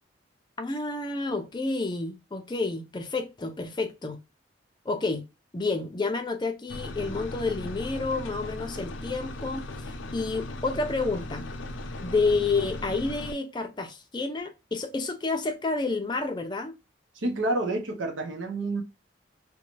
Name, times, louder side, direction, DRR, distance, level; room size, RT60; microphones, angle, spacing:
voice 1, 0.6-4.2 4.9-5.2 5.5-11.5 12.0-16.7, left 3 dB, 25° left, 0.4 m, -29 dB
sound 1, 6.7-13.3, left 2 dB, 90° left, 0.5 m, -37 dB
voice 2, 17.2-18.8, right 2 dB, 75° right, 0.7 m, -29 dB
2.6 x 2.1 x 2.9 m
head